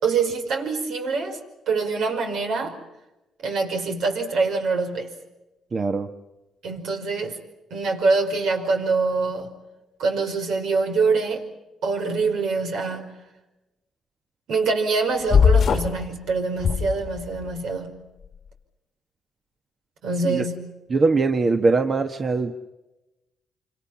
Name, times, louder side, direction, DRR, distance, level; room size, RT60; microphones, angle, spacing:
voice 1, 0.0-1.4 1.7-2.8 3.4-5.1 6.6-7.4 7.7-9.5 10.0-11.4 11.8-13.1 14.5-18.0 20.0-20.7, right 4 dB, 75° right, 5.3 m, -24 dB
voice 2, 5.7-6.1 20.2-20.4 20.9-22.6, right 3 dB, 40° right, 1.4 m, -21 dB
sound 1, 15.3-16.0 16.6-17.5, left 7 dB, 55° left, 1.3 m, -19 dB
28.0 x 26.5 x 5.8 m
cardioid pair, 90°, 0 cm